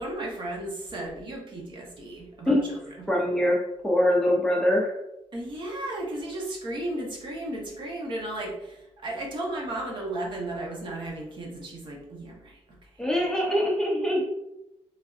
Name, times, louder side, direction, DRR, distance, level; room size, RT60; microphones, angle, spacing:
voice 1, 0.0-3.1 5.3-12.6 13.1-13.2, right 1 dB, 40° right, -1 dB, 0.8 m, -34 dB
voice 2, 3.1-4.9 13.0-14.3, left 1 dB, 5° left, -3 dB, 0.4 m, -23 dB
3.3 x 2.5 x 2.3 m, 0.85 s
cardioid pair, 140°, 12 cm